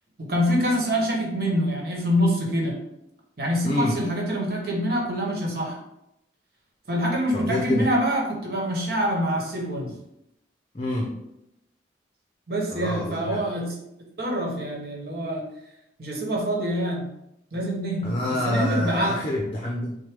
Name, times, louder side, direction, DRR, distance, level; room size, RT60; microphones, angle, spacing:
voice 1, 0.2-2.8 3.4-5.8 6.9-9.9 12.5-13.7 14.2-15.5 16.0-17.1 17.5-19.2, equal, 55° right, -1 dB, 1.2 m, -25 dB
voice 2, 3.6-4.0 7.3-7.9 10.7-11.1 12.7-13.4 18.0-20.0, left 1 dB, 30° left, -2 dB, 0.6 m, -26 dB
6.3 x 2.2 x 3.5 m, 0.83 s
head